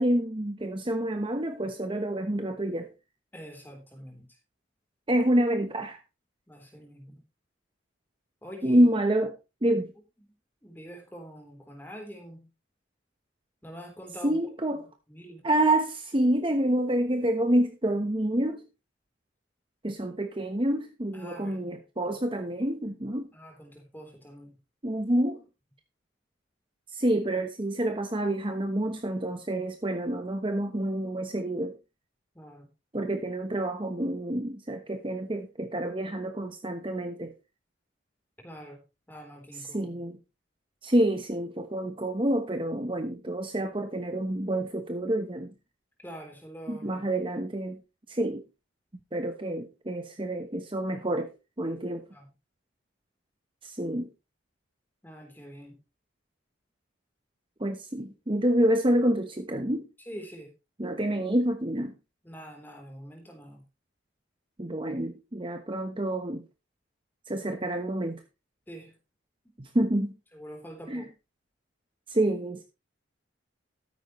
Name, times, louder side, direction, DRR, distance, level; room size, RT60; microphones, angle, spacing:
voice 1, 0.0-2.9 5.1-6.0 8.6-9.4 9.6-9.9 14.2-14.9 15.4-18.6 19.8-23.3 24.8-25.4 26.9-31.8 32.9-37.3 39.6-40.2 40.8-45.5 46.7-47.8 48.1-48.4 49.1-51.3 51.6-52.0 53.6-54.1 57.6-59.9 60.8-61.9 64.6-66.4 67.3-68.2 69.6-70.1 70.9-71.0 72.1-72.6, right 1 dB, 25° right, 1.0 m, -28 dB
voice 2, 3.3-4.3 6.5-7.2 8.4-8.9 9.6-9.7 10.6-12.5 13.6-14.4 15.1-15.5 21.1-21.8 22.0-22.1 23.3-24.6 32.4-32.7 38.4-38.8 39.1-40.0 46.0-47.0 52.1-52.3 55.0-55.8 60.1-60.5 60.9-61.0 62.2-63.6 68.7-68.9 70.3-71.1, equal, 10° left, 3.6 m, -45 dB
13.0 x 9.5 x 3.1 m
head